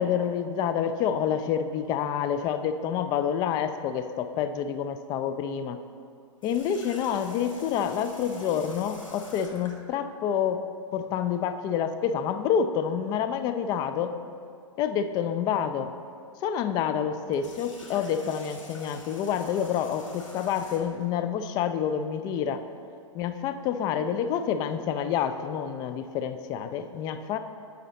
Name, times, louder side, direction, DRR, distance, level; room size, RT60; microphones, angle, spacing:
voice 1, 0.0-5.8 6.4-10.6 10.9-14.1 14.8-15.9 16.4-22.6 23.1-27.4, left 8 dB, 25° left, 9 dB, 0.3 m, -28 dB
Water tap faucet, 6.4-9.8 17.2-21.0, left 2 dB, 85° left, 1.2 m, -47 dB
9.2 x 4.0 x 4.0 m, 2.3 s
figure-of-eight pair, 110°, 16 cm